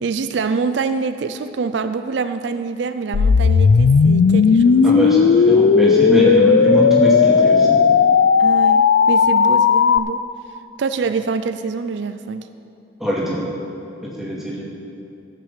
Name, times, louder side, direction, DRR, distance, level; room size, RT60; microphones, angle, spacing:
voice 1, 0.0-5.1 8.4-10.2 10.8-12.5, right 4 dB, 75° right, 10 dB, 0.4 m, -25 dB
sound 1, 3.1-10.0, left 5 dB, 80° left, 0.4 m, -14 dB
voice 2, 4.8-7.8 13.0-13.4 14.0-14.6, equal, ahead, -6 dB, 2.3 m, -21 dB
13.5 x 6.8 x 7.2 m, 2.6 s
head